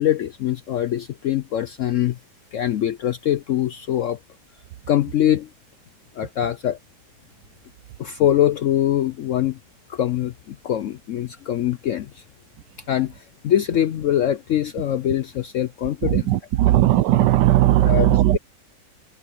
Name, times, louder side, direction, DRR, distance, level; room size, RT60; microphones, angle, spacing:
voice 1, 0.0-2.2 2.5-4.2 4.9-5.5 6.1-6.8 8.0-9.6 9.9-12.2 12.9-16.3 16.7-16.8 17.8-18.1, left 11 dB, 70° left, 0.7 m, -23 dB
voice 2, 16.0-18.4, right 14 dB, 85° right, 1.3 m, -17 dB
omnidirectional pair, 1.9 m